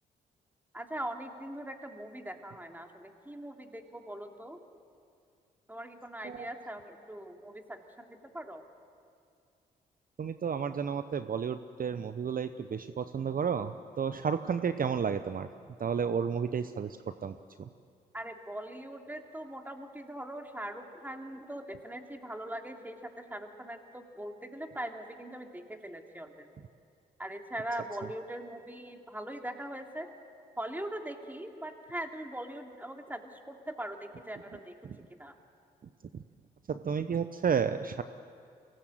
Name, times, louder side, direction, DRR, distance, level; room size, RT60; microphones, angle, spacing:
voice 1, 0.7-4.6 5.7-8.7 18.1-26.5 27.2-30.1 30.6-35.3, right 1 dB, 10° right, 3 dB, 2.8 m, -41 dB
voice 2, 6.2-6.6 10.2-15.5 15.8-17.7 34.8-35.0 36.1-36.2 36.7-38.0, right 7 dB, 45° right, 11 dB, 0.8 m, -32 dB
24.0 x 18.5 x 7.9 m, 2.3 s
hypercardioid pair, 40°, 19 cm